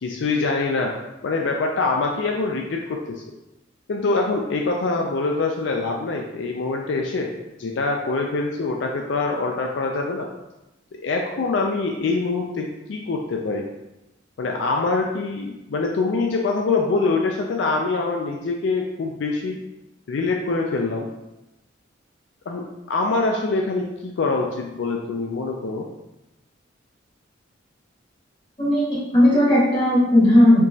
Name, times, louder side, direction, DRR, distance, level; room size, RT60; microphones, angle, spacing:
voice 1, 0.0-0.9 1.2-3.2 3.9-7.3 7.6-10.3 11.0-13.7 14.4-19.6 20.1-21.1 22.5-25.9, left 3 dB, 70° left, 1 dB, 0.4 m, -24 dB
voice 2, 28.6-30.6, left 1 dB, 25° left, -8 dB, 1.4 m, -16 dB
4.4 x 3.0 x 2.7 m, 0.96 s
head